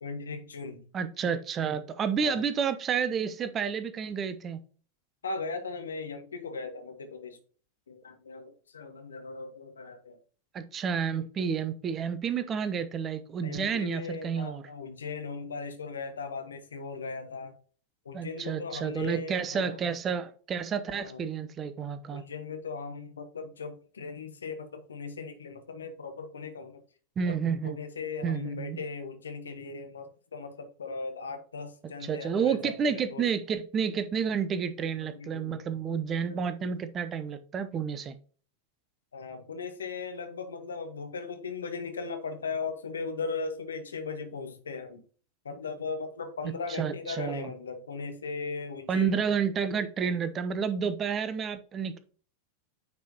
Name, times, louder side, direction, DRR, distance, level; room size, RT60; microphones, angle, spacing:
voice 1, 0.0-0.8 2.2-2.4 5.2-7.4 7.9-10.2 13.4-17.5 18.0-19.8 20.9-21.2 22.1-26.8 27.3-27.4 27.6-33.3 35.0-35.7 36.3-36.7 39.1-45.0 45.4-49.2, left 4 dB, 70° left, 1.3 m, -38 dB
voice 2, 0.9-4.6 10.5-14.6 18.1-22.2 27.2-27.8 28.2-28.8 32.0-38.2 46.4-47.5 48.9-52.0, right 6 dB, 25° right, 0.7 m, -30 dB
9.4 x 4.7 x 2.8 m
figure-of-eight pair, 90°, 0 cm